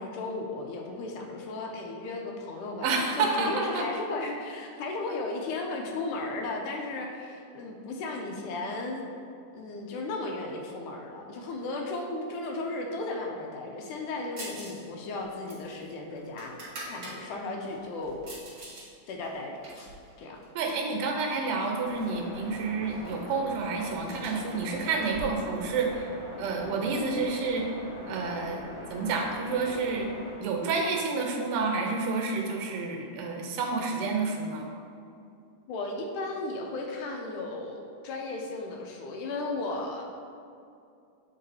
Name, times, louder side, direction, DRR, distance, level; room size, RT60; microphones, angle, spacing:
voice 1, 0.0-2.9 3.2-9.0 9.6-16.6 16.9-18.3 19.1-19.9 20.2-20.4 35.7-40.0, left 2 dB, 80° left, 1 dB, 2.0 m, -35 dB
voice 2, 2.8-3.8 20.6-26.1 26.4-27.6 28.1-30.1 30.4-34.7, right 4 dB, 80° right, 1 dB, 2.3 m, -29 dB
sound 1, 14.4-14.8 15.1-17.2 17.6-18.9 19.2-20.9 21.6-22.2 22.4-22.5 22.8-26.0, right 1 dB, 40° right, 1.5 m, -45 dB
sound 2, 21.8-30.4, left 1 dB, 60° left, 2.0 m, -42 dB
8.0 x 3.7 x 4.1 m, 2.5 s
omnidirectional pair, 3.8 m